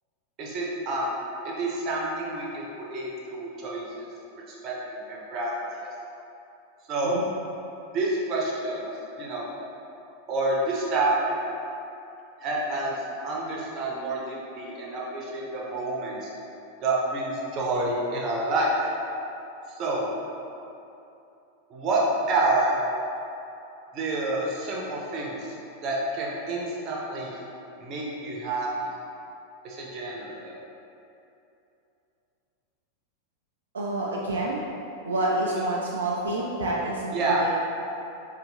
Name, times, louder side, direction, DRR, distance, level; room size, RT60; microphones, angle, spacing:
voice 1, 0.4-1.1 1.4-4.1 4.5-4.7 5.1-5.9 6.9-7.2 7.9-8.9 9.2-9.5 10.3-11.4 12.4-13.0 13.2-16.3 16.8-18.7 19.7-20.1 21.7-22.0 22.3-22.8 23.9-25.5 25.8-27.3 27.8-28.7 29.6-30.6 35.6-35.7 37.1-37.5, right 2 dB, 35° right, -3 dB, 0.7 m, -28 dB
voice 2, 33.7-34.6 35.0-37.6, right 2 dB, 70° right, -4 dB, 0.3 m, -28 dB
4.2 x 2.9 x 2.7 m, 2.8 s
figure-of-eight pair, 90°, 0 cm